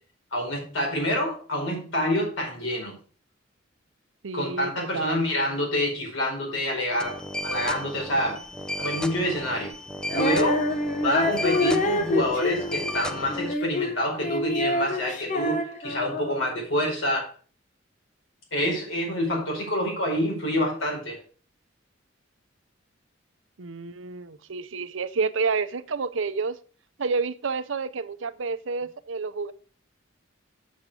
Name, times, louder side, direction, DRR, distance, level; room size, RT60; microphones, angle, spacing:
voice 1, 0.3-2.9 4.3-7.2 7.4-8.4 8.8-9.7 10.1-10.7 11.0-17.3 18.5-21.2, equal, 80° left, -1 dB, 4.9 m, -27 dB
voice 2, 4.2-5.2 23.6-26.6 27.0-29.5, right 4 dB, 70° right, 13 dB, 0.7 m, -29 dB
sound 1, 7.0-13.5, equal, 5° left, 0.6 m, -34 dB
Female singing, 10.1-16.5, left 2 dB, 40° left, 1.0 m, -27 dB
7.7 x 7.2 x 4.9 m, 0.39 s
head